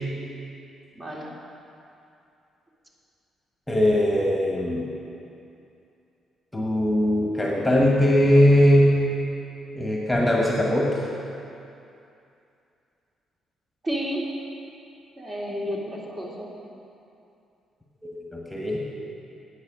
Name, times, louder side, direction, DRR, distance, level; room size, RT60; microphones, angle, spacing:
voice 1, 0.9-1.3 13.8-14.3 15.2-16.5, equal, 35° right, -4 dB, 2.6 m, -31 dB
voice 2, 3.7-4.9 6.5-9.0 9.7-11.1 18.0-18.8, equal, 10° left, -2 dB, 1.5 m, -20 dB
9.6 x 8.4 x 6.3 m, 2.7 s
cardioid pair, 90°, 0 cm